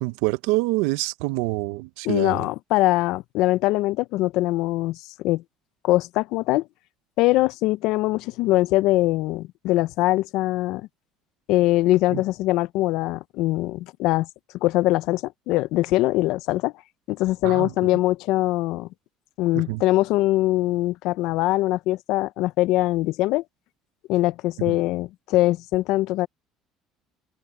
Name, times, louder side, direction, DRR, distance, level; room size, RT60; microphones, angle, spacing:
voice 1, 0.0-2.4 12.1-12.2 17.4-17.7 19.5-19.8, right 22 dB, 85° right, 0.6 m, -26 dB
voice 2, 2.0-5.4 5.8-6.6 7.2-10.9 11.5-14.3 14.6-16.7 17.1-18.9 19.4-23.4 24.1-26.3, left 17 dB, 75° left, 0.5 m, -22 dB
cardioid pair, 120°, 0 cm